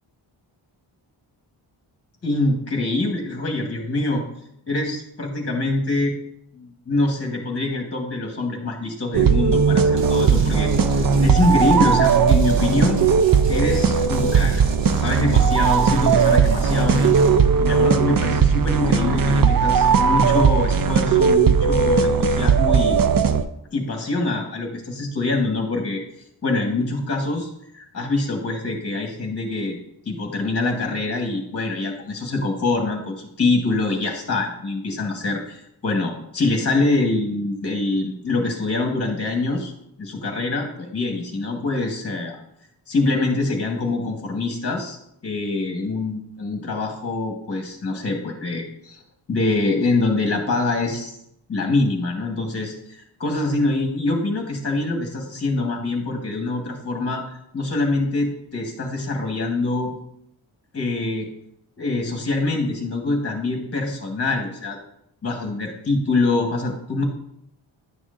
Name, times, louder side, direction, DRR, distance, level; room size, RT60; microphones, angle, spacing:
voice 1, 2.2-4.2 4.7-6.2 6.5-13.0 13.5-14.5 14.8-17.1 17.6-23.0 23.7-26.0 26.4-27.5 27.7-29.8 30.0-39.7 40.0-42.4 42.9-49.0 49.3-51.1 51.5-59.9 60.7-61.3 61.8-64.8 65.2-67.0, left 2 dB, 30° left, 1 dB, 1.3 m, -24 dB
sound 1, 9.1-23.4, right 6 dB, 45° right, 0.5 m, -17 dB
sound 2, 10.0-17.4, right 2 dB, 60° right, 1.2 m, -35 dB
9.9 x 6.2 x 2.5 m, 0.76 s
wide cardioid pair, 85°, 50 cm